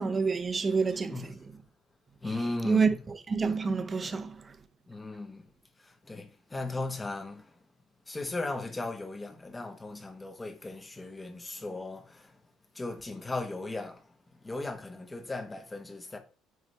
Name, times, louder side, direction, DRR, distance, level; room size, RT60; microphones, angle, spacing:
voice 1, 0.0-1.1 2.6-2.9 3.3-4.4, right 5 dB, 20° right, 0.6 m, -27 dB
voice 2, 0.9-1.4 2.2-3.1 4.9-5.5 5.8-7.5 8.1-12.4 12.7-14.1 14.4-16.2, left 2 dB, 15° left, 0.8 m, -37 dB
9.2 x 3.2 x 3.3 m
cardioid pair, 155°, 0 cm